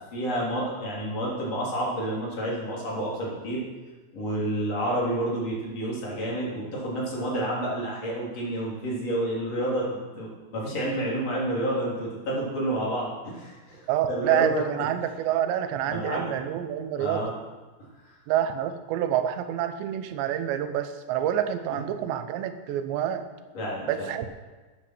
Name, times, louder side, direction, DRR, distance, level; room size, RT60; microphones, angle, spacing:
voice 1, 0.0-3.6 4.1-14.7 15.9-16.3 17.0-17.3 18.1-18.2 23.5-24.1, right 1 dB, 40° left, -5 dB, 4.4 m, -29 dB
voice 2, 13.9-17.3 18.3-23.3 23.9-24.3, right 10 dB, 90° right, 9 dB, 3.1 m, -27 dB
13.5 x 10.0 x 6.0 m, 1.3 s
omnidirectional pair, 4.9 m